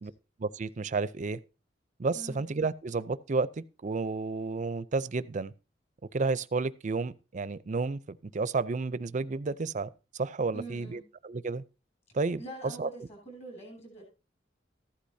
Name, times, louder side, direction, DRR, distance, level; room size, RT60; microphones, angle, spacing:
voice 1, 0.4-1.4 2.0-5.5 6.1-11.6 12.1-12.9, right 4 dB, 40° right, 0.5 m, -31 dB
voice 2, 10.5-11.0 12.4-14.0, right 2 dB, 40° left, 7.2 m, -44 dB
14.5 x 11.5 x 2.7 m
head